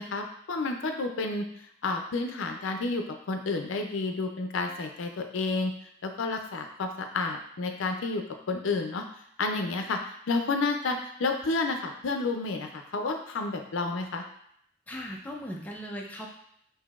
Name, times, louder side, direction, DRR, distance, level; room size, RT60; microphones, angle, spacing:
voice 1, 0.0-1.5 1.8-5.7 6.0-9.1 9.4-10.0 10.3-14.2, left 3 dB, 80° left, 4 dB, 0.5 m, -30 dB
voice 2, 14.9-16.3, equal, 10° left, -2 dB, 0.4 m, -38 dB
5.7 x 2.6 x 2.4 m, 0.70 s
head